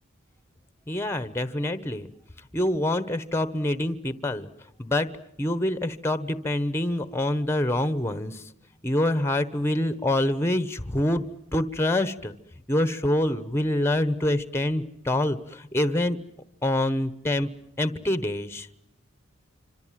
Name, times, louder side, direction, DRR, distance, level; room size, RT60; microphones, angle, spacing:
voice 1, 0.9-2.1 2.5-4.5 4.8-5.1 5.4-8.5 8.8-11.2 11.5-12.3 12.7-16.2 16.6-17.5 17.8-18.7, left 1 dB, 10° left, 13 dB, 1.0 m, -26 dB
26.5 x 26.0 x 7.5 m, 0.80 s
head